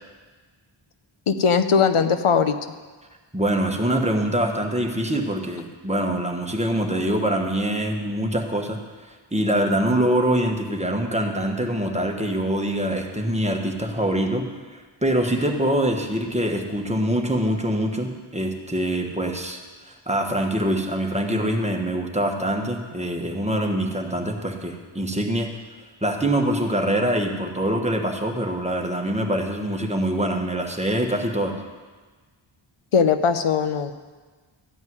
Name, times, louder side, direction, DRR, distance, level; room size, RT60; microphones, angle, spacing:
voice 1, 1.3-2.6 32.9-33.9, left 6 dB, 85° left, 9 dB, 0.8 m, -19 dB
voice 2, 3.3-8.8 9.3-14.5 14.7-19.6 20.1-25.5 26.0-31.5, right 1 dB, 15° right, 2 dB, 1.3 m, -24 dB
13.5 x 5.5 x 9.5 m, 1.4 s
wide cardioid pair, 95°, 49 cm